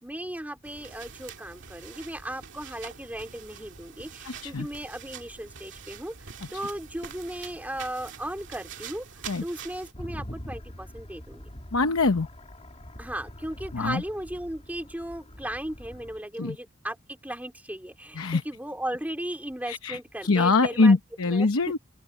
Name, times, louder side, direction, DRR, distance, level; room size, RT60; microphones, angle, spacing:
voice 1, 0.0-6.1 6.5-11.5 13.0-20.9 21.3-21.5, right 1 dB, 5° right, 2.7 m, -36 dB
sound 1, 0.6-9.9, right 6 dB, 60° right, 2.3 m, -45 dB
voice 2, 4.2-4.7 9.3-9.4 11.7-12.3 13.7-14.0 16.4-16.6 18.1-18.4 19.7-21.8, left 3 dB, 70° left, 0.9 m, -23 dB
sound 2, 9.9-16.2, equal, 30° left, 2.8 m, -43 dB
open air
head